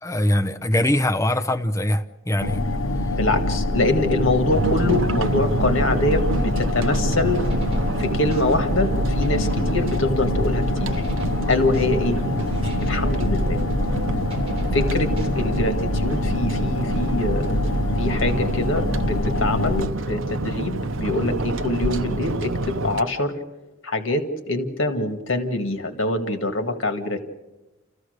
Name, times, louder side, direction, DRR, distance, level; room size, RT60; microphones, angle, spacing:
voice 1, 0.0-2.6, left 1 dB, 15° left, 6 dB, 0.9 m, -22 dB
sound 1, 2.4-19.9, left 1 dB, 90° left, 0.9 m, -25 dB
voice 2, 3.1-7.4 8.0-10.9 11.5-12.2 12.8-13.6 14.7-17.5 18.0-23.4 23.8-27.2, left 2 dB, 70° left, 6 dB, 2.0 m, -24 dB
sound 2, 4.5-23.0, right 2 dB, 70° right, 0.8 m, -28 dB
sound 3, 7.4-15.7, right 1 dB, 30° right, 3.6 m, -41 dB
29.0 x 15.0 x 6.6 m, 1.1 s
head